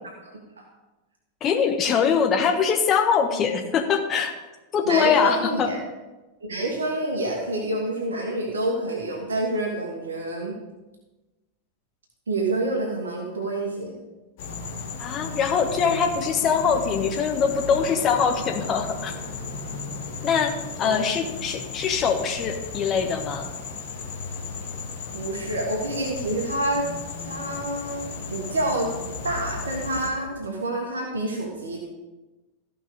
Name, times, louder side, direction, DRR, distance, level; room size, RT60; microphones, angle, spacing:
voice 1, 0.2-0.6 4.8-5.8 6.5-10.5 12.3-13.9 20.8-21.0 25.1-26.9 27.2-28.9 29.2-31.9, right 2 dB, 70° right, 0 dB, 1.6 m, -28 dB
voice 2, 1.4-4.3 4.7-5.7 15.0-19.1 20.2-23.5, left 6 dB, 30° left, 4 dB, 1.3 m, -23 dB
sound 1, 14.4-30.1, left 4 dB, 50° left, 1.6 m, -35 dB
15.0 x 5.5 x 5.1 m, 1.1 s
figure-of-eight pair, 90°, 0 cm